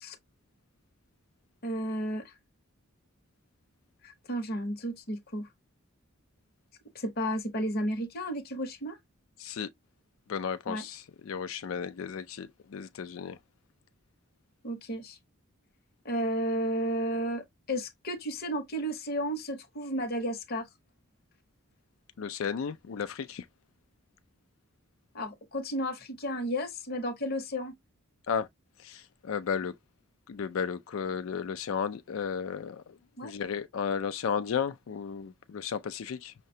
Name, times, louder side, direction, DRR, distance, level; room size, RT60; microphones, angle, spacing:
voice 1, 1.6-2.3 4.0-5.5 6.9-9.0 10.7-10.8 14.6-15.2 16.0-20.7 25.1-27.7 33.2-33.3, equal, 45° left, 0.8 m, -33 dB
voice 2, 10.3-13.4 22.2-23.5 28.3-28.5 28.8-29.7 30.3-33.0 33.2-36.3, left 6 dB, 70° left, 0.4 m, -34 dB
5.7 x 2.1 x 2.6 m
head